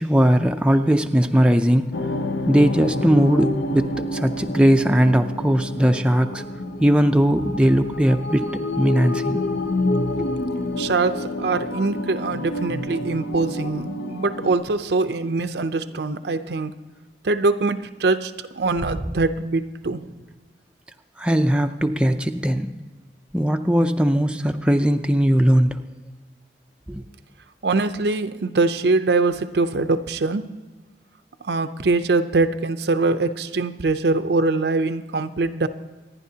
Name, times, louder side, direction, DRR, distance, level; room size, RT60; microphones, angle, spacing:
voice 1, 0.0-1.9 2.5-6.4 6.8-9.4 10.2-10.3 21.2-22.7 23.3-25.8 26.9-27.0, equal, 5° right, 5 dB, 0.4 m, -19 dB
sound 1, 1.9-14.5, left 1 dB, 75° left, 0.7 m, -28 dB
voice 2, 10.8-16.7 17.2-20.1 27.6-30.4 31.4-35.7, right 3 dB, 70° right, 11 dB, 0.6 m, -23 dB
25.5 x 10.0 x 2.8 m, 1.3 s
head